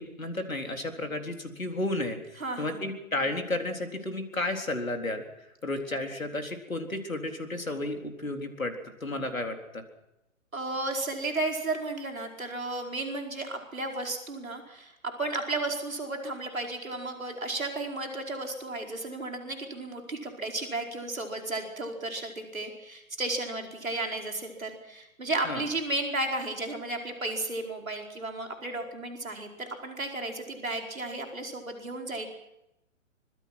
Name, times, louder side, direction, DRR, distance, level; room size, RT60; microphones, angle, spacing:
voice 1, 0.0-5.3 5.6-8.8 9.0-9.8 25.5-25.6, left 2 dB, 90° left, 4 dB, 4.0 m, -32 dB
voice 2, 2.4-2.8 10.5-32.3, right 2 dB, 85° right, 2 dB, 4.8 m, -33 dB
25.0 x 22.5 x 6.1 m, 0.87 s
figure-of-eight pair, 125°, 40 cm